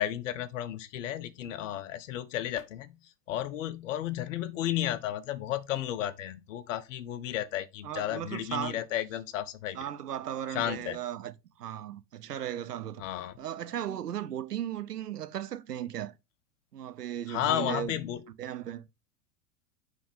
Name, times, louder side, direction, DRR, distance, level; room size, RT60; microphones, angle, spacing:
voice 1, 0.0-2.9 3.3-9.8 10.5-11.0 13.0-13.3 17.3-18.2, left 12 dB, 50° left, 0.8 m, -33 dB
voice 2, 7.8-8.8 9.7-16.1 16.7-18.0 18.4-18.9, right 10 dB, 75° right, 0.8 m, -36 dB
9.6 x 3.5 x 3.5 m
figure-of-eight pair, 100°, 47 cm